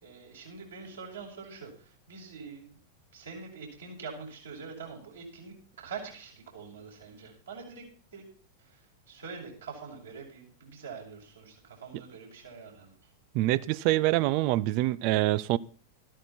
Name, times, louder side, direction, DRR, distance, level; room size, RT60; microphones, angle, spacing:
voice 1, 0.0-2.8 3.1-7.8 8.1-8.2 8.6-12.9, right 5 dB, 70° right, 6.3 m, -44 dB
voice 2, 13.3-15.6, right 17 dB, 45° right, 0.6 m, -25 dB
14.0 x 12.5 x 4.4 m
figure-of-eight pair, 90°, 0 cm